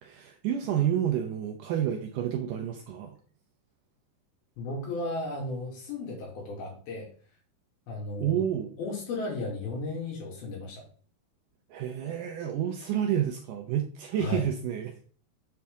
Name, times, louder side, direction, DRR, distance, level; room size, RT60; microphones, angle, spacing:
voice 1, 0.0-3.2 8.2-8.8 11.7-15.0, right 10 dB, 80° right, 4 dB, 1.9 m, -29 dB
voice 2, 4.6-7.1 7.9-8.4 8.8-10.8 14.2-14.4, left 2 dB, 75° left, -1 dB, 4.0 m, -34 dB
7.5 x 5.7 x 3.5 m, 0.42 s
omnidirectional pair, 4.4 m